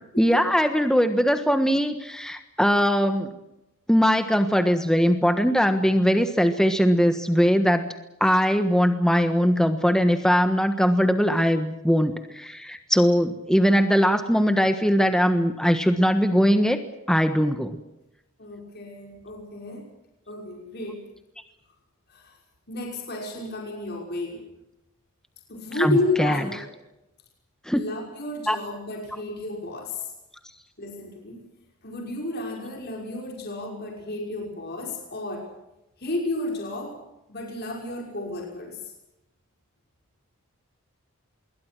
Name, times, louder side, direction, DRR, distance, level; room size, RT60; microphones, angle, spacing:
voice 1, 0.2-3.3 3.9-7.9 8.2-16.8 17.1-17.8 25.8-26.5 27.7-27.8 28.5-28.6, equal, 5° left, 7 dB, 1.3 m, -21 dB
voice 2, 18.4-19.8 20.3-21.0 22.1-22.4 22.7-24.4 25.5-26.7 27.7-30.1 30.8-31.4 31.8-35.5 36.0-37.0 37.3-38.8, left 2 dB, 50° left, 0 dB, 5.8 m, -32 dB
26.5 x 23.0 x 6.2 m, 0.90 s
head